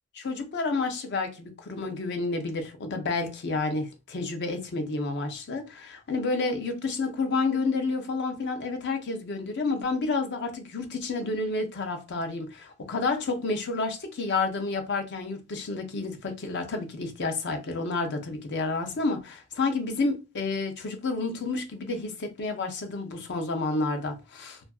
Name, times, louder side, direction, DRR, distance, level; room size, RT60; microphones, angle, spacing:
voice 1, 0.1-24.6, left 3 dB, 55° left, 0.5 m, -30 dB
2.6 x 2.4 x 2.3 m
head